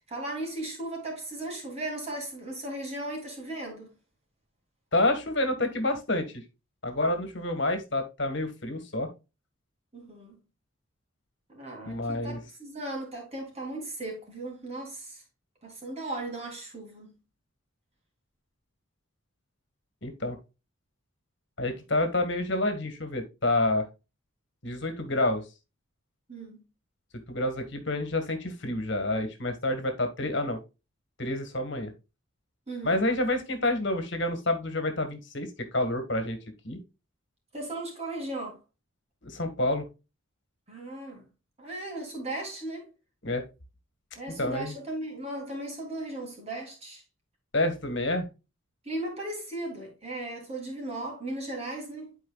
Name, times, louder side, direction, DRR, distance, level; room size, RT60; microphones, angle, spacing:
voice 1, 0.0-3.9 9.9-10.4 11.5-15.2 15.6-17.1 26.3-26.6 32.7-33.0 37.5-38.6 40.7-41.2 41.6-42.9 44.1-47.0 48.8-52.2, right 1 dB, 30° right, 3.3 m, -37 dB
voice 2, 4.9-6.4 6.8-9.1 11.8-12.4 20.0-20.4 21.6-23.8 24.6-25.4 27.3-30.6 31.2-31.9 32.8-36.4 36.6-36.8 39.2-39.8 43.2-43.4 44.4-44.7 47.5-48.3, left 1 dB, 60° left, 1.6 m, -28 dB
11.5 x 4.8 x 2.3 m
head